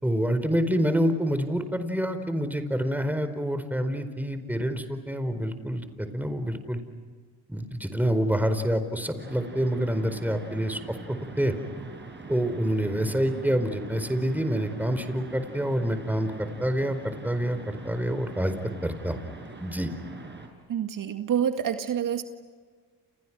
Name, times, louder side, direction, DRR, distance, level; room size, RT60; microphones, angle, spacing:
voice 1, 0.0-6.8 7.5-11.5 12.3-18.5 18.8-19.2 19.6-19.9, equal, 5° right, 9 dB, 4.7 m, -27 dB
sound 1, 9.2-20.5, right 3 dB, 30° right, 7.0 m, -43 dB
voice 2, 20.7-22.2, right 9 dB, 60° right, 7 dB, 2.0 m, -27 dB
30.0 x 30.0 x 6.2 m, 1.5 s
supercardioid pair, 70°, 37 cm